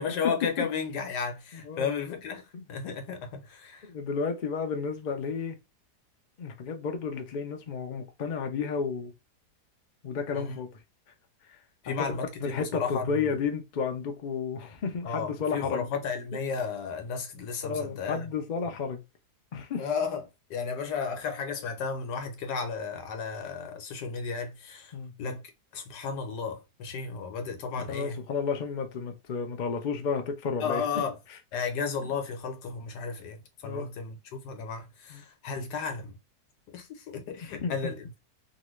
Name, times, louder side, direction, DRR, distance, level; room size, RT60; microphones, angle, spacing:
voice 1, 0.0-3.9 10.3-10.6 11.8-13.4 15.0-18.3 19.8-20.2 20.5-24.9 25.2-25.4 25.7-28.2 30.6-31.2 31.5-36.2 36.7-38.2, left 5 dB, 90° left, 1.4 m, -33 dB
voice 2, 1.5-1.9 2.5-2.6 3.8-5.6 6.4-9.1 10.0-10.7 11.5-11.6 11.9-12.0 12.4-15.9 17.6-19.0 19.5-19.9 24.9-25.1 27.9-30.8 33.6-33.9 35.1-35.2 37.6-37.8, left 5 dB, 60° left, 0.5 m, -32 dB
2.9 x 2.6 x 3.0 m
omnidirectional pair, 1.7 m